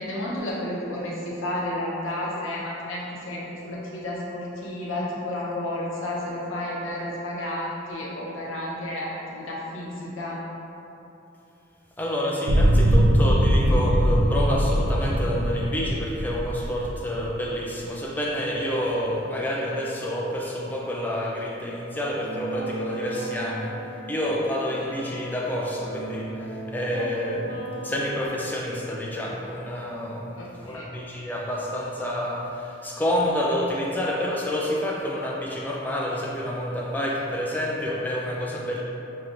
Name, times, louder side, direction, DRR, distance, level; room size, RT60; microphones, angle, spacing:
voice 1, 0.0-10.4 30.3-30.9, left 1 dB, 85° left, -5 dB, 0.8 m, -31 dB
voice 2, 12.0-23.7 24.0-38.8, equal, 10° left, -4 dB, 0.4 m, -28 dB
sound 1, 12.5-17.4, equal, 90° right, 0.4 m, -21 dB
sound 2, 22.2-28.3, right 2 dB, 40° left, 0.7 m, -37 dB
4.9 x 2.9 x 2.5 m, 2.9 s
head